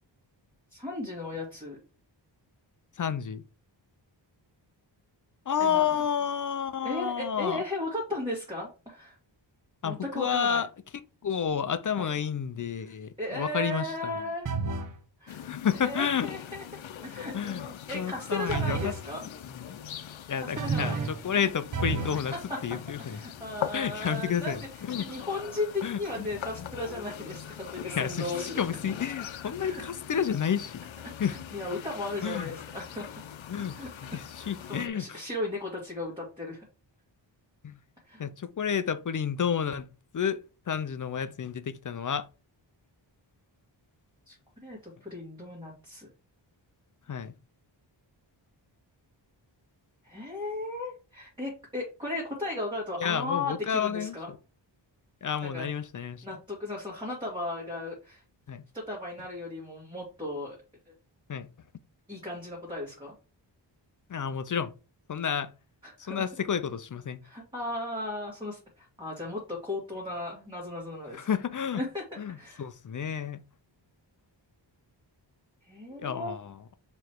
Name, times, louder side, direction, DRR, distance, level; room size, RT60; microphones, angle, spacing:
voice 1, 0.7-1.8 5.6-6.0 6.8-9.2 9.8-10.6 12.0-12.1 13.2-14.6 15.2-16.6 17.0-19.3 20.4-21.0 22.5-22.6 23.1-28.7 29.6-29.8 31.2-33.1 33.7-36.6 38.1-38.3 44.3-44.4 44.6-46.1 50.0-54.3 55.4-55.7 56.2-58.2 58.7-60.6 62.1-63.1 65.8-66.3 67.2-71.3 71.7-72.0 72.3-72.6 75.7-76.3, left 2 dB, 10° right, 1.8 m, -36 dB
voice 2, 3.0-3.4 5.5-7.6 9.8-10.7 11.2-14.1 15.4-16.3 17.3-17.7 17.9-18.9 19.5-19.8 20.3-22.3 22.6-23.2 23.7-24.6 24.9-25.1 25.8-26.3 26.6-26.7 27.9-30.8 31.2-31.4 32.2-32.5 33.5-33.8 34.1-35.2 37.6-37.8 38.2-39.9 40.1-40.4 40.7-42.3 47.1-47.3 53.0-54.4 55.2-56.2 58.5-58.6 61.3-61.5 64.1-64.7 65.1-65.5 66.0-67.2 71.1-71.8 72.2-73.4 76.0-76.6, left 7 dB, 45° left, 0.5 m, -30 dB
sound 1, 14.5-15.0 18.5-19.0 20.6-21.2 21.7-22.2, right 4 dB, 45° right, 0.7 m, -30 dB
sound 2, 15.3-34.9, left 9 dB, 80° left, 0.7 m, -42 dB
7.0 x 3.1 x 4.4 m
wide cardioid pair, 175°, 46 cm